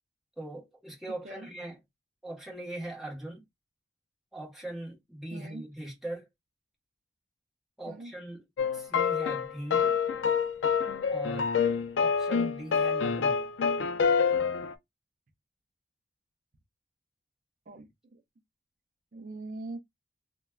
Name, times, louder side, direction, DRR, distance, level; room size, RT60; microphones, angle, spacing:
voice 1, 0.4-1.8 2.2-3.4 4.3-6.3 7.8-8.4 8.7-10.0 11.1-11.5 12.0-13.4, right 1 dB, ahead, 1.1 m, -40 dB
voice 2, 5.3-5.6 7.9-8.1 17.7-18.2 19.1-19.8, right 2 dB, 45° right, 0.5 m, -42 dB
sound 1, 8.6-14.7, left 6 dB, 70° left, 0.4 m, -27 dB
3.1 x 2.2 x 2.2 m
head